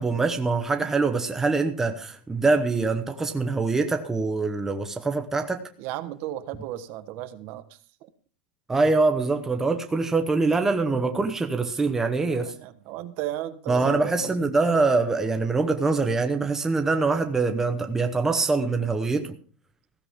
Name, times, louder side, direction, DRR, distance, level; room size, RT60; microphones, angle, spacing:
voice 1, 0.0-5.6 8.7-12.5 13.7-19.3, right 3 dB, 10° right, 0.9 m, -24 dB
voice 2, 5.8-8.1 12.3-14.3, right 14 dB, 45° right, 1.3 m, -35 dB
15.5 x 14.0 x 3.6 m
supercardioid pair, 160°, 5 cm